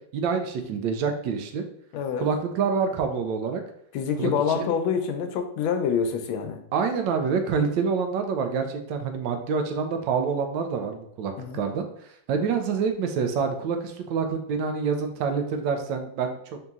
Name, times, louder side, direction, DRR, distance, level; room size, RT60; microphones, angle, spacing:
voice 1, 0.1-1.6 2.2-3.6 4.2-4.6 6.7-11.9 12.3-16.4, right 5 dB, 75° right, 5 dB, 1.2 m, -27 dB
voice 2, 1.9-2.3 3.9-6.6 11.4-11.6, left 6 dB, 85° left, 6 dB, 1.4 m, -26 dB
4.0 x 2.8 x 3.5 m, 0.69 s
omnidirectional pair, 2.1 m